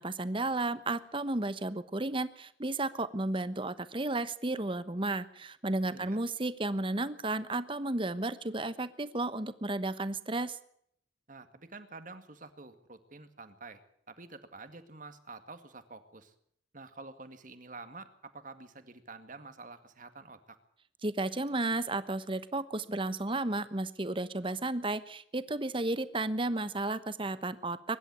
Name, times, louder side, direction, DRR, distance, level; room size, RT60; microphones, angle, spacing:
voice 1, 0.0-10.6 21.0-28.0, right 2 dB, 30° right, 14 dB, 1.1 m, -33 dB
voice 2, 11.3-13.8 14.1-16.3 16.7-20.6, right 3 dB, 45° right, 9 dB, 2.1 m, -48 dB
23.5 x 12.0 x 9.7 m, 0.68 s
head